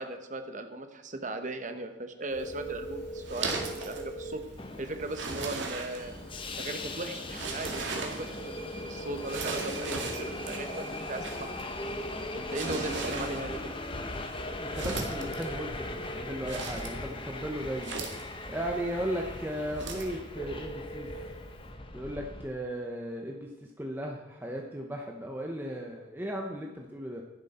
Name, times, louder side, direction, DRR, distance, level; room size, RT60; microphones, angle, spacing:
voice 1, 0.0-4.4 4.8-6.1 6.6-11.6 12.3-13.7, right 2 dB, 40° right, 7 dB, 1.1 m, -38 dB
Telephone, 2.3-21.7, right 1 dB, 60° left, 4.5 m, -45 dB
sound 1, 2.4-20.2, right 3 dB, 65° right, 2.0 m, -40 dB
Subway metro underground, 4.6-22.5, left 2 dB, 25° left, 1.0 m, -39 dB
voice 2, 14.6-18.0 18.5-21.1 21.9-27.2, right 1 dB, 10° right, 0 dB, 0.9 m, -36 dB
11.5 x 10.5 x 4.3 m, 1.1 s
head